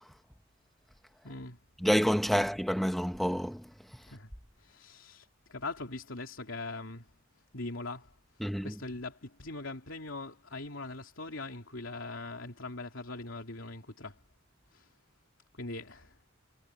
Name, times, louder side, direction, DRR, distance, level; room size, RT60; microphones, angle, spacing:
voice 1, 1.2-1.6 4.1-4.3 4.6-7.1 7.5-8.1 8.4-14.2 14.7-14.9 15.5-16.1, left 2 dB, 70° left, 3.4 m, -41 dB
voice 2, 1.8-3.6 8.4-8.7, equal, ahead, 1.3 m, -28 dB
head